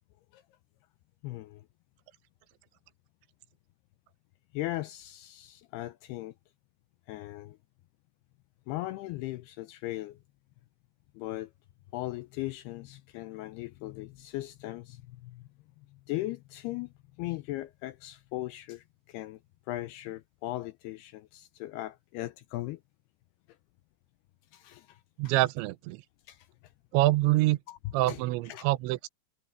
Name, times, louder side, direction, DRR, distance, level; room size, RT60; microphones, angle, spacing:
voice 1, 1.2-1.7 4.5-6.3 7.1-7.6 8.7-10.2 11.1-11.5 11.9-15.5 15.8-19.4 19.7-22.8 24.5-25.3 26.3-26.7 27.7-27.8 28.1-28.2 28.5-28.7, left 17 dB, 80° left, 2.3 m, -38 dB
voice 2, 25.2-26.0 26.9-27.6 27.9-29.1, right 18 dB, 85° right, 3.1 m, -26 dB
omnidirectional pair, 5.2 m